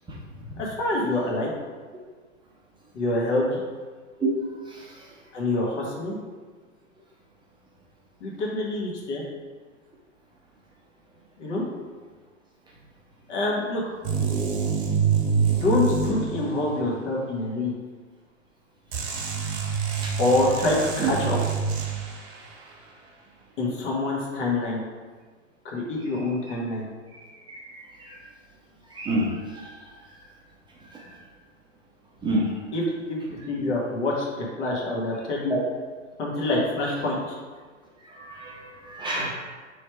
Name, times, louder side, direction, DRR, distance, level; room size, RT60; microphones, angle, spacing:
voice 1, 0.6-1.5 2.9-3.6 5.3-6.2 8.2-9.2 11.4-11.6 13.3-13.8 15.5-17.7 20.2-21.4 23.6-24.8 25.6-26.9 32.7-35.6 36.2-37.4, left 2 dB, 70° left, -3 dB, 1.4 m, -26 dB
sound 1, 14.0-16.9 18.9-22.3, right 6 dB, 60° right, 1.0 m, -26 dB
voice 2, 28.9-29.3 29.5-29.7 32.2-32.4 35.5-35.6 38.1-39.3, right 2 dB, 10° right, -4 dB, 0.6 m, -28 dB
3.3 x 3.1 x 4.5 m, 1.5 s
hypercardioid pair, 115°, 38 cm